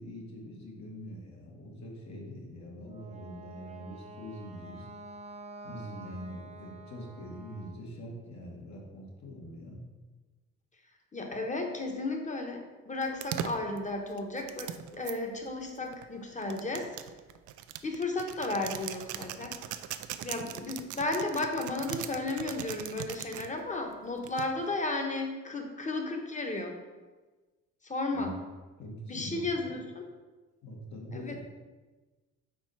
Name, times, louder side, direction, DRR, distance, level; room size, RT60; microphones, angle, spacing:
voice 1, 0.0-4.9 5.6-9.8 28.1-28.3 28.8-29.8 30.6-31.4, equal, 65° left, -3 dB, 1.9 m, -44 dB
Wind instrument woodwind instrument, 2.9-7.8, right 3 dB, 20° right, 0.6 m, -48 dB
voice 2, 11.1-17.0 17.8-19.6 20.2-26.8 27.8-28.3 29.1-30.1 31.1-31.4, left 2 dB, 25° left, 3 dB, 1.1 m, -34 dB
sound 1, 13.0-15.1 15.9-23.5 24.2-24.7, right 11 dB, 80° right, 0.5 m, -40 dB
4.5 x 4.3 x 5.5 m, 1.2 s
cardioid pair, 90°, 30 cm